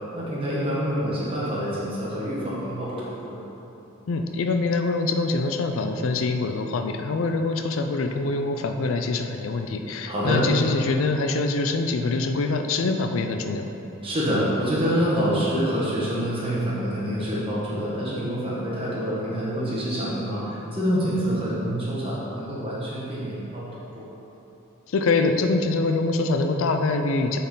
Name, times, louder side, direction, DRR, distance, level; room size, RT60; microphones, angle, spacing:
voice 1, 0.1-3.4 10.1-10.5 14.0-23.7 23.9-24.1, equal, 25° right, -7 dB, 1.6 m, -26 dB
voice 2, 4.1-13.7 24.9-27.4, left 3 dB, 70° left, 6 dB, 0.4 m, -24 dB
9.0 x 4.3 x 3.9 m, 2.9 s
head